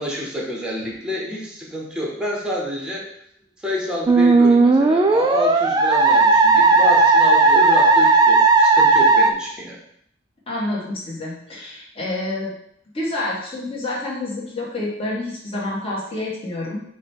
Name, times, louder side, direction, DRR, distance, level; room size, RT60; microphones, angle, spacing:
voice 1, 0.0-3.1 3.6-9.8, equal, 5° right, -2 dB, 0.9 m, -28 dB
Musical instrument, 4.1-9.3, right 3 dB, 20° right, 0.3 m, -14 dB
voice 2, 10.5-12.5 12.9-16.8, left 2 dB, 30° left, -5 dB, 1.2 m, -28 dB
4.8 x 2.2 x 4.5 m, 0.70 s
head